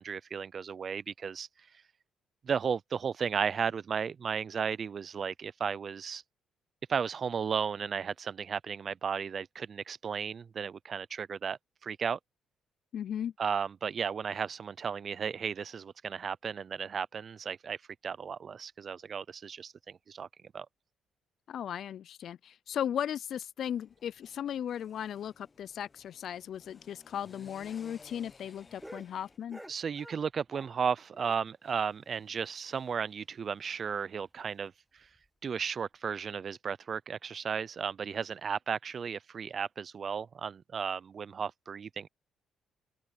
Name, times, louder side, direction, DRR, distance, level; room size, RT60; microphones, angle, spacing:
voice 1, 0.0-1.5 2.4-6.2 6.9-12.2 13.4-17.8 18.0-20.3 20.5-20.7 29.7-34.7 35.4-42.1, right 6 dB, 45° right, 0.4 m, -34 dB
voice 2, 12.9-13.3 21.5-29.6, left 9 dB, 65° left, 0.3 m, -36 dB
sound 1, 23.8-29.4, left 4 dB, 30° left, 0.9 m, -58 dB
sound 2, 27.4-30.8 31.1-33.1 33.4-33.5 33.8-33.9 34.3-34.4 35.0-35.3 36.1-36.2, equal, ahead, 1.2 m, -53 dB
open air
cardioid pair, 90°, 0 cm